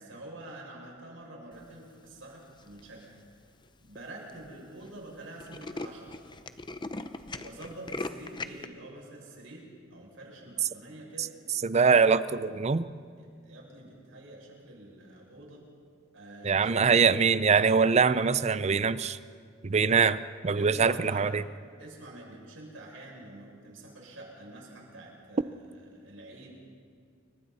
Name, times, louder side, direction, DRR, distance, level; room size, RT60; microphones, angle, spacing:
voice 1, 0.0-3.2 3.8-6.2 7.3-11.4 13.2-15.6 16.1-16.9 20.5-21.3 21.8-26.5, right 1 dB, 75° right, -2 dB, 6.6 m, -47 dB
Tools, 2.6-3.0 3.6-3.7 4.0-4.1 4.3-4.5 4.8-4.9 5.2-8.7, left 2 dB, 25° left, 0.7 m, -39 dB
voice 2, 11.6-12.9 16.4-19.2 19.6-21.4, right 5 dB, 35° right, 15 dB, 0.5 m, -23 dB
29.0 x 23.5 x 4.2 m, 2.2 s
head